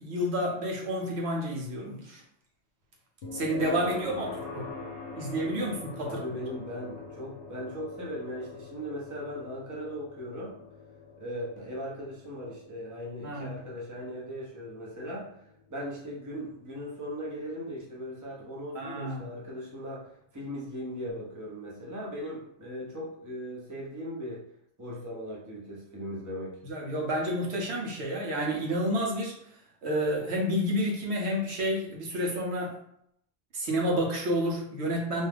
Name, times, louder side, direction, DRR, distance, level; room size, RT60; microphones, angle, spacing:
voice 1, 0.0-2.2 3.3-4.7 5.1-6.2 13.2-13.6 18.7-19.3 26.6-29.3 29.8-32.7 33.5-35.3, equal, 70° right, -1 dB, 0.9 m, -30 dB
sound 1, 3.2-18.2, left 4 dB, 65° left, 0.9 m, -44 dB
voice 2, 3.8-4.5 6.1-10.5 11.2-15.3 15.7-24.4 24.8-26.6, equal, 20° right, -5 dB, 0.6 m, -38 dB
2.6 x 2.3 x 3.3 m, 0.72 s
omnidirectional pair, 1.2 m